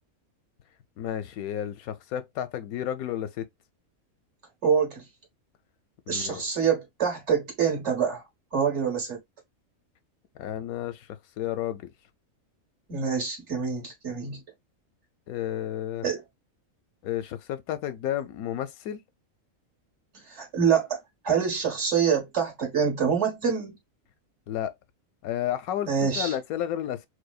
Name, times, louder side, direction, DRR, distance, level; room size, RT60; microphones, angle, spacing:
voice 1, 1.0-3.5 6.1-6.5 10.4-11.1 11.4-11.9 15.3-16.0 17.0-19.0 24.5-24.7 25.2-27.1, left 11 dB, 90° left, 1.1 m, -32 dB
voice 2, 4.6-5.0 6.1-8.2 8.5-9.2 12.9-14.4 16.0-16.2 20.3-21.0 21.2-23.8 25.9-26.3, right 7 dB, 55° right, 1.7 m, -26 dB
4.8 x 2.1 x 2.3 m
omnidirectional pair, 1.5 m